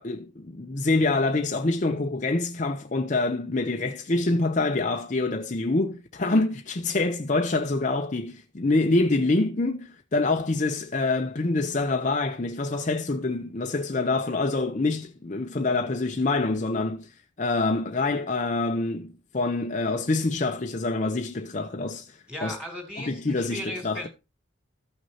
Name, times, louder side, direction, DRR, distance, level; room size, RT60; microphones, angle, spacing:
voice 1, 0.0-17.1 17.4-22.6 23.0-24.1, left 2 dB, 40° left, 0.6 m, -26 dB
voice 2, 22.3-24.1, equal, 5° right, 2.9 m, -36 dB
14.5 x 6.2 x 2.8 m
head